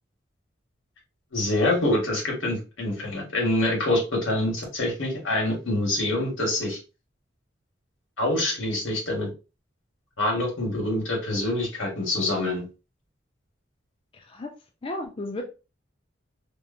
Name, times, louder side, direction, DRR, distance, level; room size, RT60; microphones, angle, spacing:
voice 1, 1.3-6.8 8.2-9.3 10.2-12.6, left 1 dB, 85° left, -1 dB, 1.3 m, -25 dB
voice 2, 14.1-14.5 14.8-15.4, left 2 dB, 30° left, 3 dB, 0.4 m, -33 dB
2.9 x 2.1 x 2.5 m, 0.30 s
head